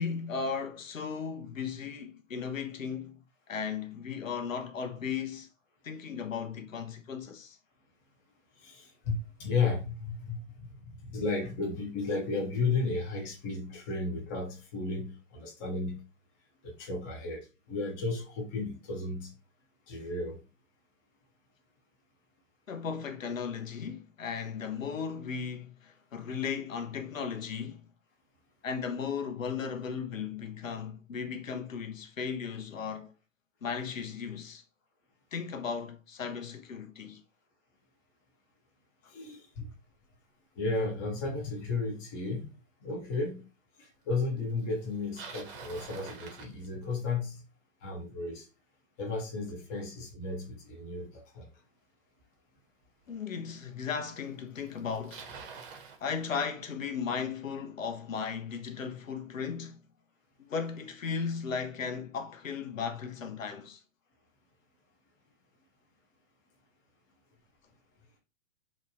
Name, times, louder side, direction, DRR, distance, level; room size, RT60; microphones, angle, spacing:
voice 1, 0.0-3.2 3.5-5.5 5.8-7.6 22.7-27.9 28.6-33.1 33.6-34.6 35.3-37.2 53.1-55.2 56.0-59.8 60.4-63.8, left 6 dB, 85° left, 0.7 m, -36 dB
voice 2, 8.6-16.0 16.6-19.3 19.9-20.4 39.1-39.7 40.6-42.5 42.8-43.4 43.8-47.4 47.8-48.4 49.0-51.5, left 3 dB, 15° left, 0.4 m, -34 dB
Bicycle, 44.8-47.2 52.2-52.3 53.1-53.2 54.3-54.4 54.6-56.0, right 5 dB, 45° right, 0.7 m, -46 dB
2.9 x 2.1 x 2.5 m
figure-of-eight pair, 115°, 38 cm